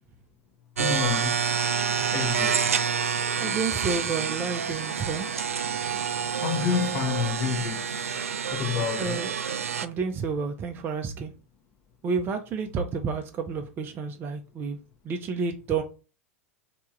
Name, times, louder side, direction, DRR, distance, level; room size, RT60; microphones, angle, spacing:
voice 1, 0.8-1.3 2.1-2.6 6.1-8.3 8.5-9.2, left 7 dB, 40° left, 0.9 m, -29 dB
sound 1, 0.8-9.9, right 7 dB, 80° right, 0.4 m, -28 dB
voice 2, 3.4-5.3 9.0-9.3 9.8-11.3 12.0-14.8 15.0-15.8, right 5 dB, 30° right, 0.6 m, -30 dB
3.5 x 2.9 x 4.4 m
figure-of-eight pair, 90°, 7 cm